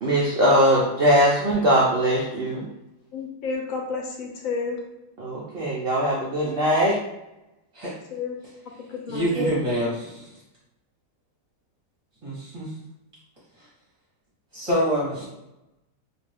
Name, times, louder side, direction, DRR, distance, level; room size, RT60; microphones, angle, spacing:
voice 1, 0.0-2.6 5.2-7.0 9.4-9.5, equal, 85° right, -5 dB, 0.5 m, -21 dB
voice 2, 3.1-4.8 8.1-8.4 8.8-9.4, left 5 dB, 70° left, 1 dB, 0.9 m, -31 dB
voice 3, 9.1-10.2 12.2-12.7 14.5-15.2, equal, 30° right, -9 dB, 0.7 m, -26 dB
2.6 x 2.4 x 3.3 m, 0.93 s
omnidirectional pair, 1.7 m